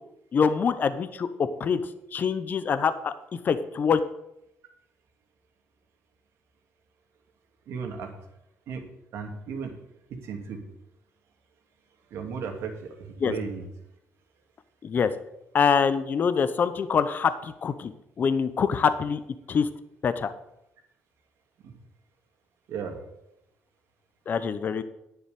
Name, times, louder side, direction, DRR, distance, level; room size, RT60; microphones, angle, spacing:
voice 1, 0.3-1.8 2.1-3.1 3.4-4.0 13.2-13.3 14.8-15.1 15.5-17.9 18.2-19.2 19.5-19.7 20.0-20.3 24.3-24.8, left 6 dB, 40° left, 12 dB, 0.8 m, -24 dB
voice 2, 7.7-8.1 8.7-8.8 9.1-9.7 10.1-10.6 12.1-13.6 21.6-21.7 22.7-23.0, right 6 dB, 75° right, 4 dB, 2.5 m, -35 dB
10.5 x 7.2 x 8.2 m, 0.84 s
cardioid pair, 120°, 5 cm